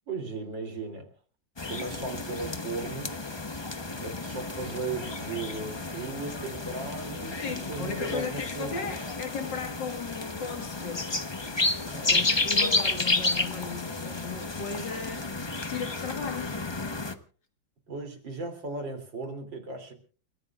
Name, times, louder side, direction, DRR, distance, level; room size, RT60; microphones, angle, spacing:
voice 1, 0.1-1.1 1.7-3.1 4.0-8.8 11.9-12.2 14.9-15.0 17.9-19.9, right 3 dB, 75° right, 3.7 m, -36 dB
sound 1, 1.6-17.1, left 3 dB, 25° left, 0.6 m, -31 dB
voice 2, 7.4-11.3 12.1-15.3 15.7-16.5, left 5 dB, 70° left, 2.3 m, -36 dB
29.5 x 15.0 x 2.4 m
omnidirectional pair, 2.0 m